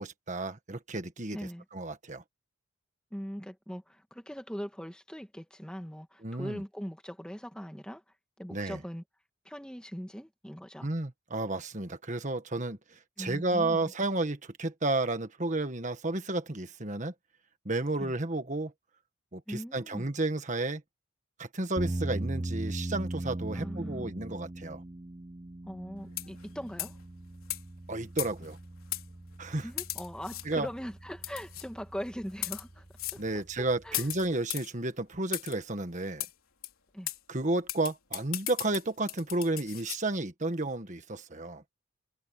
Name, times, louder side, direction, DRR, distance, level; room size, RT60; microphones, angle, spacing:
voice 1, 0.0-1.4 1.7-2.2 6.2-6.6 8.5-8.8 10.8-17.1 17.6-18.7 19.3-20.8 21.4-24.8 27.9-28.6 29.4-29.7 30.5-30.7 33.1-36.2 37.3-41.6, right 2 dB, 35° right, 1.6 m, -32 dB
voice 2, 1.3-1.7 3.1-8.0 8.4-9.0 9.4-10.9 13.2-13.9 18.0-18.1 19.5-20.1 23.5-24.1 25.6-27.0 29.5-32.9 33.1-33.2 33.6-34.1 36.9-37.1, equal, 5° left, 1.8 m, -41 dB
sound 1, 21.8-34.3, right 1 dB, 20° right, 0.5 m, -40 dB
sound 2, 26.1-26.5 26.8-27.0 27.5-27.6 28.2-28.5 28.9-29.0 29.8-30.5 31.2-31.7 32.3-32.6 33.0-33.2 33.9-34.7 35.3-35.6 36.2-36.3 36.6-36.7 37.1-37.2 37.7-40.0, left 15 dB, 80° left, 3.7 m, -36 dB
head